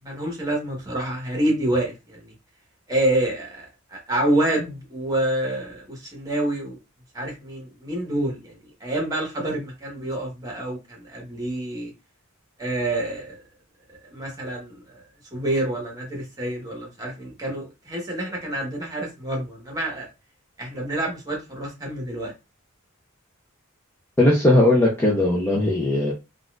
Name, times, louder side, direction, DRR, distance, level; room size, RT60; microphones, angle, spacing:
voice 1, 0.0-2.3 2.9-3.6 3.9-6.8 7.1-11.9 12.6-13.4 14.1-15.0 15.3-20.1 20.6-22.3, right 1 dB, 20° right, 1.3 m, -27 dB
voice 2, 24.2-26.1, left 1 dB, 10° left, 0.6 m, -18 dB
4.0 x 2.5 x 2.4 m
head